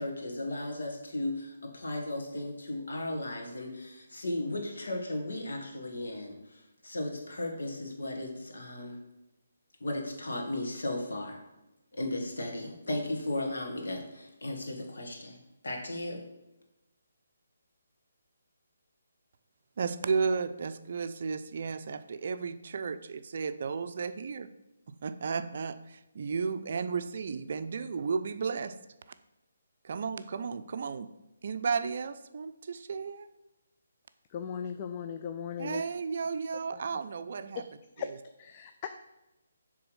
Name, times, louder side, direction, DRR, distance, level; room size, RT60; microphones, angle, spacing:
voice 1, 0.0-9.0 9.8-11.4 11.9-16.2, left 1 dB, 70° left, 2 dB, 1.6 m, -36 dB
voice 2, 19.8-24.5 24.9-28.8 29.8-31.1 31.4-33.3 35.6-37.6, right 5 dB, 55° right, 11 dB, 0.4 m, -33 dB
voice 3, 34.3-35.8 36.7-37.0 38.0-38.1 38.4-38.9, left 7 dB, 30° left, 8 dB, 0.4 m, -38 dB
6.8 x 3.4 x 5.4 m, 0.97 s
figure-of-eight pair, 145°, 0 cm